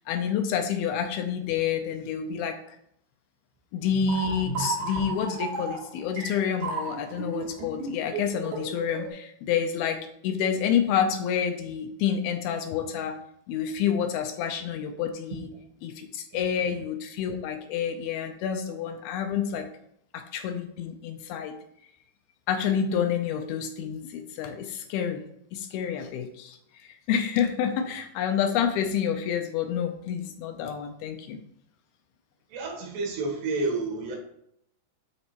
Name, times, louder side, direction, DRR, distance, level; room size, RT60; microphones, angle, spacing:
voice 1, 0.0-2.6 3.7-13.2 13.5-15.5 15.8-19.7 20.1-21.6 22.5-25.2 25.5-26.6 27.1-31.4, left 8 dB, 80° left, 5 dB, 2.3 m, -28 dB
sound 1, 3.9-9.1, right 4 dB, 70° right, 3.5 m, -33 dB
voice 2, 16.3-16.8 32.5-34.2, right 3 dB, 85° right, 0 dB, 3.6 m, -31 dB
11.5 x 4.1 x 2.9 m, 0.72 s
omnidirectional pair, 4.7 m